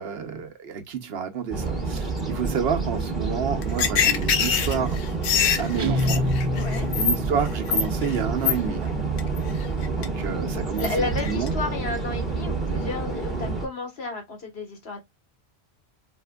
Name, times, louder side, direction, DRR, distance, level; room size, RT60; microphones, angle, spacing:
voice 1, 0.0-5.0 5.6-6.2 7.0-9.0 9.9-11.5, right 6 dB, 70° right, 0.9 m, -29 dB
sound 1, 1.5-13.7, right 4 dB, ahead, 1.2 m, -28 dB
sound 2, 3.6-7.1 7.5-8.2 8.4-8.5 9.2-9.4 9.8-10.1 10.8-10.9 11.2-11.5, left 8 dB, 85° left, 0.9 m, -23 dB
Guitar, 5.8-7.5, left 2 dB, 40° right, 0.5 m, -26 dB
voice 2, 6.5-6.9 10.8-15.0, left 3 dB, 70° left, 1.6 m, -32 dB
4.3 x 2.4 x 2.2 m
omnidirectional pair, 1.1 m